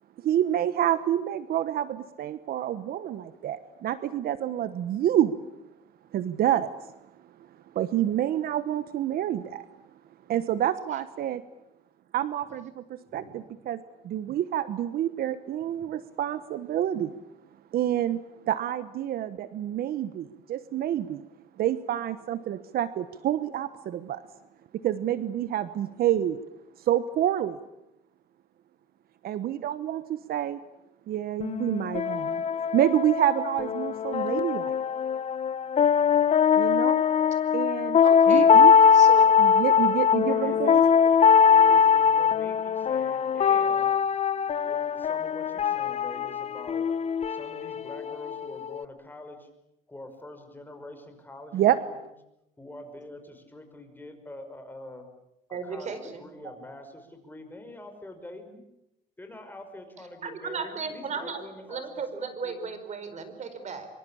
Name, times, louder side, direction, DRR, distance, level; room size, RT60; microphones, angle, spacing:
voice 1, 0.2-5.4 6.1-6.9 7.7-9.6 10.3-11.4 12.1-17.2 17.7-21.2 21.6-24.2 24.8-26.4 26.8-27.6 29.2-30.6 31.1-34.8 36.6-37.0 37.5-38.0 38.3-38.8 39.4-40.8 51.5-51.8, right 11 dB, 65° right, 14 dB, 1.2 m, -28 dB
sound 1, 31.4-48.8, left 7 dB, 40° left, 0.9 m, -22 dB
voice 2, 38.0-38.5 38.9-39.2 55.5-56.2 60.2-61.4 61.7-63.9, right 5 dB, 45° right, 10 dB, 4.8 m, -35 dB
voice 3, 40.2-40.8 41.5-44.0 44.6-46.9 47.3-49.5 49.9-51.9 52.6-55.1 55.5-58.6 59.2-61.8 62.1-62.6, left 1 dB, 10° left, 5 dB, 6.0 m, -44 dB
25.0 x 24.5 x 8.7 m, 0.85 s
cardioid pair, 110°, 17 cm